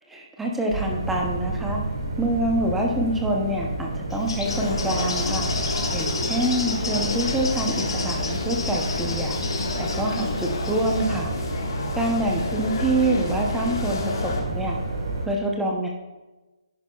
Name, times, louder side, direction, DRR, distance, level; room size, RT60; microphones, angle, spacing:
voice 1, 0.1-1.8 2.2-5.5 5.9-9.4 9.8-11.3 12.0-14.8 15.3-15.9, right 1 dB, 5° right, 0 dB, 0.6 m, -26 dB
sound 1, 0.7-15.3, right 2 dB, 40° right, 2.2 m, -30 dB
Bird, 4.1-11.0, left 4 dB, 60° left, 1.7 m, -33 dB
sound 2, 4.4-14.4, left 3 dB, 40° left, 1.4 m, -31 dB
10.5 x 10.0 x 2.3 m, 1.1 s
hypercardioid pair, 175°, 3 cm